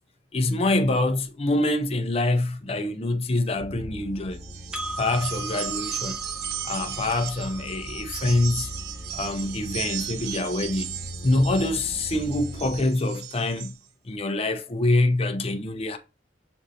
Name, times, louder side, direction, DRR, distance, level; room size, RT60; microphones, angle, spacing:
voice 1, 0.3-4.4 5.0-6.2 6.6-8.7 9.1-10.9 11.2-13.7 14.1-16.0, left 2 dB, 35° left, 0.6 m, -25 dB
sound 1, 3.5-12.8, equal, 25° right, 1.0 m, -40 dB
sound 2, 4.3-13.8, right 11 dB, 60° right, 0.4 m, -36 dB
Percussion, 4.7-9.5, equal, 5° right, 0.6 m, -39 dB
6.2 x 2.6 x 2.7 m
head